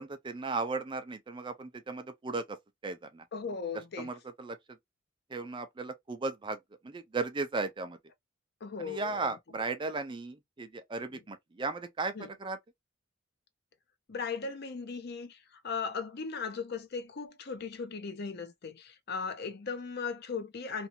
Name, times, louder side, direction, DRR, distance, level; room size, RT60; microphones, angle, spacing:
voice 1, 0.0-2.6 2.8-3.2 4.0-4.6 5.3-6.6 6.8-8.0 8.8-12.6, right 3 dB, 25° right, 0.4 m, -36 dB
voice 2, 3.3-4.1 8.6-9.3 11.1-11.2 12.1-12.3 14.1-20.9, left 5 dB, 50° left, 0.5 m, -37 dB
2.6 x 2.3 x 2.7 m
head